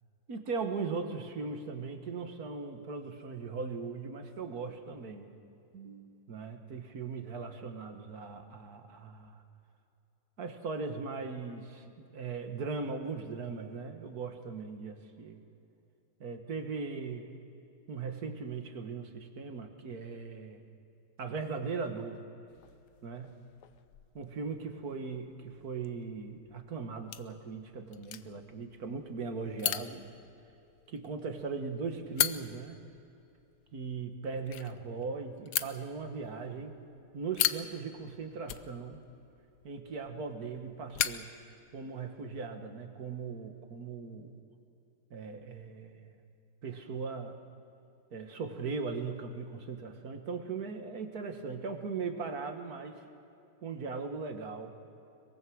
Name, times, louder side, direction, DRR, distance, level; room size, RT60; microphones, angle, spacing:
voice 1, 0.3-5.3 5.7-9.4 10.4-15.4 16.2-17.3 17.9-20.6 21.2-22.2 23.0-23.4 24.1-30.0 30.9-32.8 33.7-36.8 37.1-39.0 39.6-41.3 41.7-44.3 45.1-46.1 46.6-47.4 48.1-53.1 53.6-54.7, right 4 dB, 50° right, 6 dB, 1.9 m, -39 dB
sound 1, 22.5-42.1, left 11 dB, 65° left, 1.1 m, -40 dB
23.0 x 22.0 x 6.4 m, 2.8 s
omnidirectional pair, 2.3 m